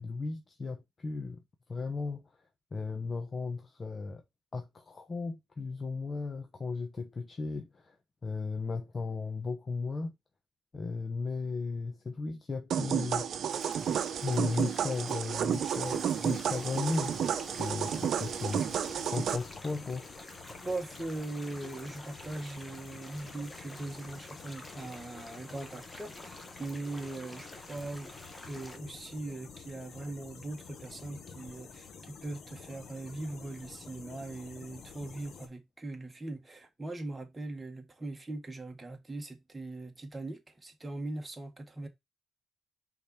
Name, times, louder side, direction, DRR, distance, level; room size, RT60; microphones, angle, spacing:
voice 1, 0.0-1.4 1.7-2.3 2.7-4.2 4.5-8.0 8.2-10.1 10.7-13.3 14.2-17.2 17.5-20.1, left 4 dB, 35° left, 1.0 m, -36 dB
sound 1, 12.7-19.4, right 8 dB, 65° right, 0.8 m, -31 dB
sound 2, 13.5-28.8, left 1 dB, 15° left, 1.4 m, -50 dB
sound 3, 15.8-35.5, left 6 dB, 60° left, 1.4 m, -50 dB
voice 2, 20.6-28.1 28.4-41.9, right 2 dB, 20° right, 1.7 m, -40 dB
5.3 x 4.1 x 4.3 m
cardioid pair, 90°, 0 cm